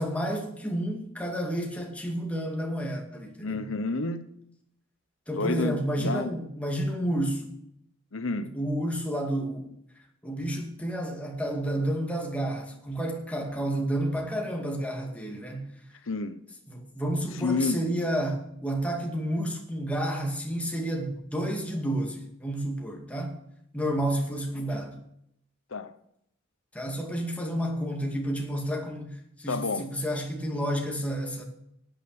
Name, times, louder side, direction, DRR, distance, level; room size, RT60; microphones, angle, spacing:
voice 1, 0.0-3.6 5.3-7.5 8.5-9.7 10.2-15.7 16.7-23.4 23.7-24.9 26.7-31.4, right 1 dB, 5° left, 2.3 m, -30 dB
voice 2, 3.4-4.3 5.3-6.3 8.1-8.5 16.1-16.4 17.3-17.8 25.7-25.9 29.5-29.9, left 3 dB, 85° left, 0.9 m, -29 dB
12.5 x 9.1 x 6.8 m
head